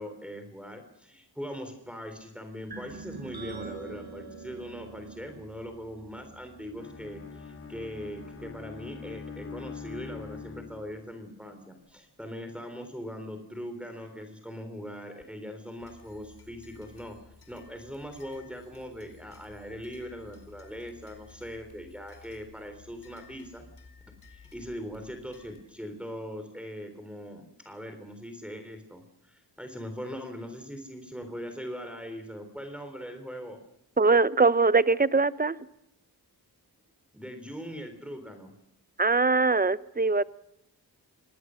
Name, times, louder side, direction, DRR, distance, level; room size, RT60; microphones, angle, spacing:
voice 1, 0.0-17.2 17.5-23.6 24.3-33.6 37.1-38.5, equal, 5° right, 3.7 m, -41 dB
sound 1, 2.7-8.4, right 4 dB, 65° right, 6.8 m, -45 dB
Bowed string instrument, 6.8-11.2, left 5 dB, 30° left, 1.9 m, -43 dB
sound 2, 15.8-25.6, left 5 dB, 70° left, 4.7 m, -55 dB
voice 2, 34.0-35.6 39.0-40.2, right 4 dB, 20° right, 0.8 m, -22 dB
27.0 x 19.5 x 6.4 m
cardioid pair, 60°, 40 cm